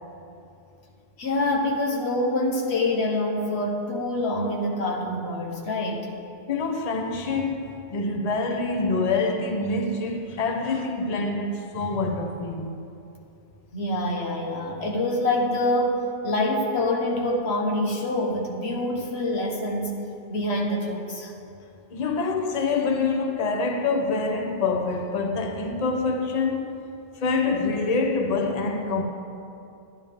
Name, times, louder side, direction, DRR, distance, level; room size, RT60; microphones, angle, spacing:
voice 1, 1.2-6.1 13.7-20.0 20.3-21.3, left 1 dB, 85° left, 1.5 m, -26 dB
voice 2, 6.5-12.7 21.9-26.8 27.2-29.0, left 3 dB, 40° left, 0.8 m, -26 dB
12.0 x 10.5 x 3.6 m
omnidirectional pair, 1.1 m